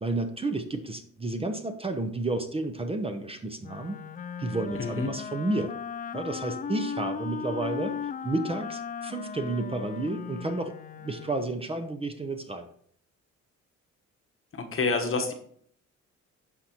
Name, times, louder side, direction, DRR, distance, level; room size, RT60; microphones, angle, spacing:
voice 1, 0.0-4.0 4.4-5.7 6.1-8.0 8.2-12.7, right 2 dB, 20° right, 7 dB, 0.7 m, -31 dB
Wind instrument woodwind instrument, 3.6-11.7, left 7 dB, 30° left, 0.4 m, -37 dB
voice 2, 4.8-5.1 14.5-15.3, left 3 dB, 45° left, 4 dB, 1.2 m, -28 dB
12.0 x 4.1 x 2.9 m, 0.62 s
cardioid pair, 90°, 30 cm